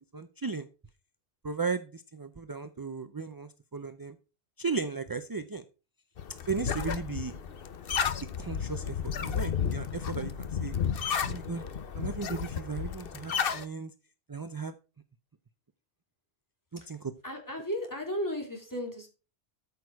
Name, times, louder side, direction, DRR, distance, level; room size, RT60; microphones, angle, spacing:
voice 1, 0.1-0.7 1.4-4.2 4.6-5.6 6.5-7.4 8.4-10.7 11.2-11.6 12.0-13.9 14.3-14.7 16.7-17.1, right 4 dB, 30° right, 11 dB, 0.5 m, -36 dB
sound 1, 6.2-13.6, left 7 dB, 60° left, 1.0 m, -32 dB
voice 2, 17.2-19.1, equal, 15° left, 2 dB, 3.1 m, -35 dB
13.5 x 6.2 x 4.6 m, 0.33 s
omnidirectional pair, 1.1 m